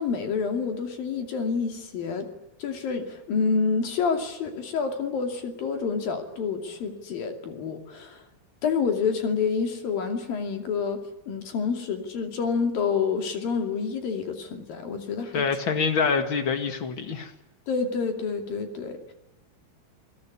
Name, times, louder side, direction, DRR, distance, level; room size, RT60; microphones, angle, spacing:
voice 1, 0.0-2.3 2.6-8.2 8.6-11.0 11.3-15.4 17.7-19.1, left 5 dB, 50° left, 5 dB, 3.9 m, -28 dB
voice 2, 15.3-17.3, left 5 dB, 85° left, 7 dB, 1.1 m, -25 dB
28.5 x 19.0 x 9.7 m, 0.93 s
omnidirectional pair, 5.6 m